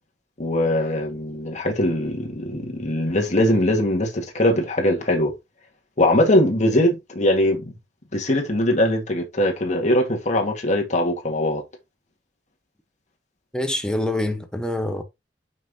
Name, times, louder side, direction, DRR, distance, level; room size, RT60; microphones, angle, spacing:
voice 1, 0.4-5.3 6.0-7.6 8.1-11.6, left 1 dB, 40° left, 1.9 m, -21 dB
voice 2, 13.5-15.0, left 1 dB, 5° left, 1.1 m, -25 dB
6.0 x 5.8 x 2.9 m
head